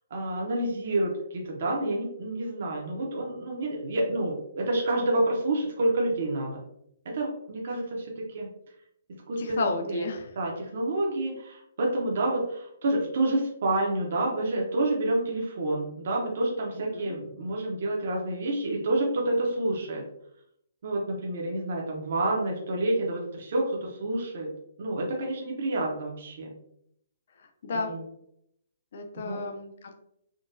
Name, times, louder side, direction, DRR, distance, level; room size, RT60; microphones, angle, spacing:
voice 1, 0.1-6.6 7.1-8.5 9.3-10.1 10.3-20.0 20.8-24.5 24.8-26.5 27.7-28.0 29.2-29.4, right 1 dB, 45° right, -1 dB, 0.6 m, -28 dB
voice 2, 9.4-10.3 16.7-17.2 27.4-27.9 28.9-29.9, left 3 dB, 45° left, 4 dB, 0.4 m, -33 dB
3.7 x 2.2 x 2.5 m, 0.75 s
hypercardioid pair, 175°, 0 cm